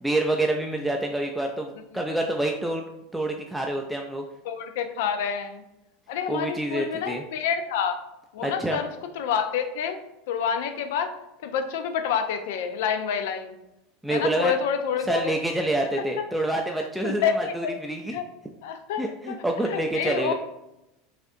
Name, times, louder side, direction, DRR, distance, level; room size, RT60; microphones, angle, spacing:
voice 1, 0.0-2.8 3.1-4.2 6.3-7.2 8.4-8.8 14.0-14.5 15.1-18.2 19.0-20.3, right 1 dB, 5° right, 1 dB, 0.3 m, -27 dB
voice 2, 4.4-5.6 6.1-8.0 8.3-8.9 9.2-10.0 10.3-11.2 11.4-13.6 14.1-15.4 17.0-17.7 18.1-18.3 18.6-20.3, left 7 dB, 70° left, 8 dB, 0.4 m, -28 dB
4.2 x 2.5 x 2.5 m, 0.90 s
hypercardioid pair, 95°, 0 cm